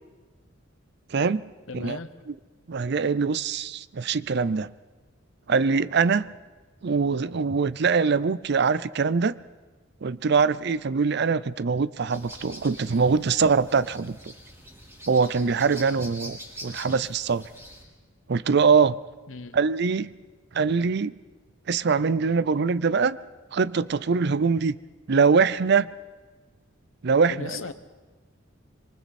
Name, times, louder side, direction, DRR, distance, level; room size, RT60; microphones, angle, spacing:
voice 1, 1.1-1.4 1.7-2.0 2.7-4.7 5.5-6.3 6.8-9.3 10.0-14.2 15.1-17.5 18.3-19.0 19.5-20.1 20.5-21.1 21.7-23.2 23.5-24.8 25.1-25.9 27.0-27.6, right 5 dB, 55° right, 18 dB, 0.5 m, -23 dB
voice 2, 1.7-2.1 19.3-19.6 27.3-27.7, left 3 dB, 80° left, 11 dB, 1.2 m, -36 dB
sound 1, 12.1-17.8, equal, 15° right, 5.7 m, -44 dB
26.0 x 23.5 x 4.2 m, 1.3 s
head